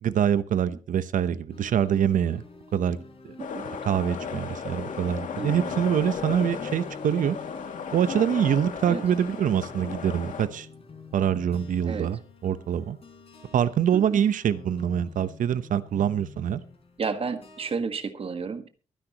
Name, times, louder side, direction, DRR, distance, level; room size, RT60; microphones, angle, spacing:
voice 1, 0.0-2.4 2.7-3.0 3.8-7.4 7.9-10.7 11.1-13.0 13.5-16.6, right 9 dB, 90° right, 14 dB, 0.9 m, -25 dB
sound 1, 1.5-17.7, left 3 dB, 50° left, 4.3 m, -47 dB
by the sea, 3.4-10.5, left 6 dB, 80° left, 2.4 m, -35 dB
voice 2, 5.4-5.8 8.8-9.0 11.9-12.1 13.9-14.2 17.0-18.7, right 5 dB, 45° right, 8 dB, 1.6 m, -32 dB
23.0 x 10.0 x 3.0 m, 0.35 s
wide cardioid pair, 120°, 13 cm